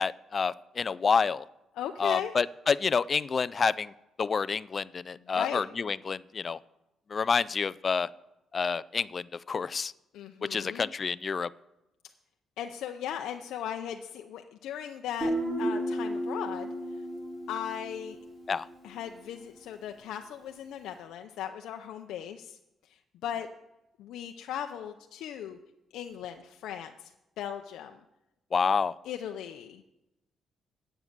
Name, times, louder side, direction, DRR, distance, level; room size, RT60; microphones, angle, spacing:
voice 1, 0.0-1.4 2.0-3.9 4.2-6.6 7.1-8.1 8.5-9.9 10.4-11.5 18.5-18.7 28.5-28.9, left 5 dB, 40° left, 17 dB, 0.3 m, -28 dB
voice 2, 1.7-2.3 5.2-5.7 10.1-10.9 12.6-16.7 17.5-18.2 18.8-22.6 22.9-23.5 24.0-25.6 25.9-28.0 29.0-29.9, left 10 dB, 85° left, 4 dB, 0.6 m, -38 dB
Guitar, 15.2-18.8, right 1 dB, 40° right, 4.0 m, -33 dB
8.8 x 7.2 x 8.0 m, 0.94 s
cardioid pair, 90°, 0 cm